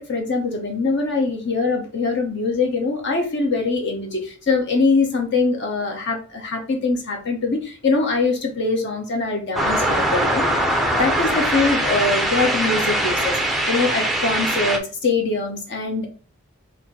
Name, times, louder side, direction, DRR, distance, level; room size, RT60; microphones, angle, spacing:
voice 1, 0.0-16.1, left 3 dB, 50° left, 3 dB, 0.8 m, -23 dB
sound 1, 9.6-14.8, right 1 dB, ahead, 0.5 m, -21 dB
4.2 x 2.5 x 4.0 m, 0.37 s
head